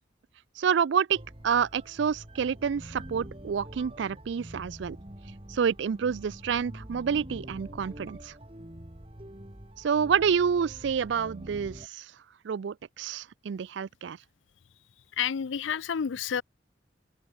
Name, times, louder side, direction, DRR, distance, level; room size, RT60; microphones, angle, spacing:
voice 1, 0.6-5.0 5.5-8.3 9.8-12.1 12.4-14.2, right 7 dB, 75° right, 0.4 m, -28 dB
psc puredata toii, 1.1-11.9, right 1 dB, 30° right, 2.0 m, -45 dB
voice 2, 15.2-16.4, left 7 dB, 90° left, 0.5 m, -29 dB
open air
head